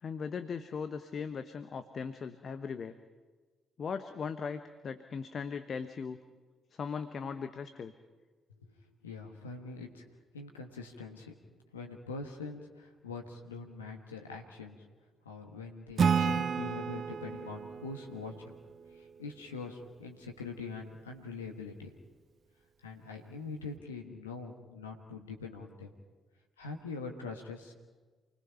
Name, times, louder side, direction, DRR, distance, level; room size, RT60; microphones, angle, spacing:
voice 1, 0.0-3.0 3.8-6.2 6.7-7.9, left 6 dB, 50° left, 10 dB, 1.0 m, -38 dB
voice 2, 9.0-10.1 10.3-11.4 11.7-14.8 15.2-18.6 18.9-21.9 22.8-25.9 26.6-27.7, left 3 dB, 85° left, 3 dB, 1.4 m, -43 dB
Acoustic guitar / Strum, 16.0-19.4, right 6 dB, 50° right, 1.2 m, -32 dB
28.0 x 20.5 x 5.8 m, 1.3 s
figure-of-eight pair, 45°, 0 cm